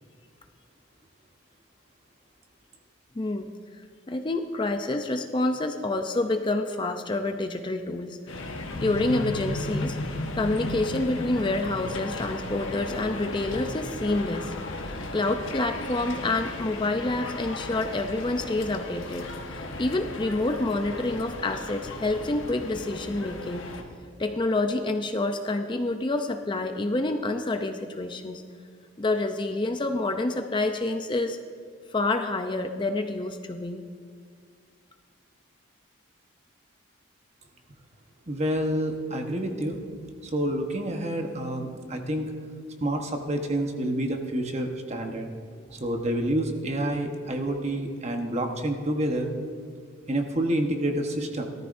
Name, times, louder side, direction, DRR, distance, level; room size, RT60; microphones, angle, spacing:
voice 1, 3.1-3.5 4.1-8.2 8.8-10.0 10.3-14.5 15.1-23.6 24.2-28.4 29.0-31.4 31.9-33.9, left 2 dB, 25° left, 6 dB, 0.5 m, -28 dB
sound 1, 8.3-23.8, left 2 dB, 75° left, 1.3 m, -35 dB
voice 2, 38.3-39.8 40.3-42.3 42.8-45.3 45.7-49.3 50.1-51.5, right 1 dB, 35° right, 3 dB, 1.1 m, -28 dB
18.0 x 13.5 x 2.6 m, 2.1 s
head